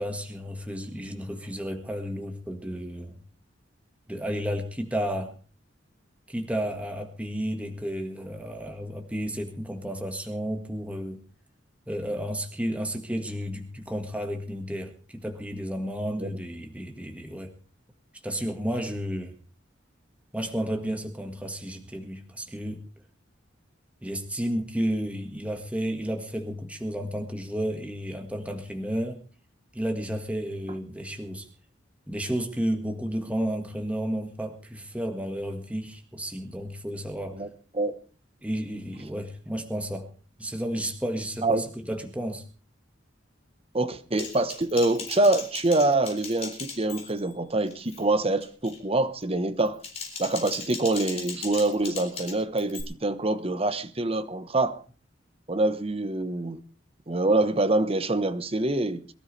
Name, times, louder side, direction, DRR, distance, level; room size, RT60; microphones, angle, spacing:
voice 1, 0.0-3.2 4.1-5.3 6.3-11.2 11.9-17.5 18.2-19.3 20.3-22.8 24.0-29.2 29.7-31.5 32.1-37.4 38.4-40.1 40.4-42.5, equal, 5° right, 1.7 m, -32 dB
voice 2, 43.7-49.8 50.2-54.8 55.5-56.6 57.1-59.0, right 2 dB, 30° right, 1.1 m, -25 dB
Typing, 44.2-47.3 47.7-48.0 48.4-48.8 49.6-52.8, left 5 dB, 35° left, 4.1 m, -38 dB
23.0 x 13.0 x 3.3 m
head